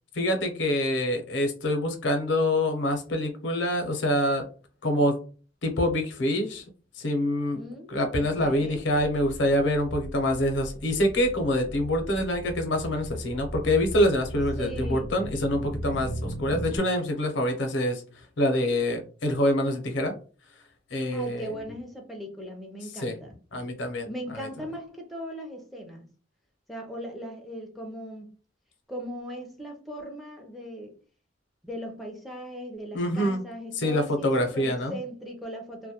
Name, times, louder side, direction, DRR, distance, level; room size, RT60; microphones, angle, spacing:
voice 1, 0.1-4.4 4.8-5.2 5.6-6.6 7.0-7.6 7.9-18.0 18.4-20.1 20.9-21.5 23.0-23.1 23.5-24.1 24.3-24.4 32.9-33.4 33.8-35.0, left 1 dB, 80° left, 0.6 m, -25 dB
voice 2, 7.5-7.9 8.2-8.8 14.6-15.1 20.9-23.4 24.0-26.1 26.7-28.3 28.9-31.0 31.6-35.9, equal, ahead, 0.5 m, -38 dB
sound 1, 8.6-16.8, right 1 dB, 40° right, 0.8 m, -37 dB
2.2 x 2.1 x 2.7 m
head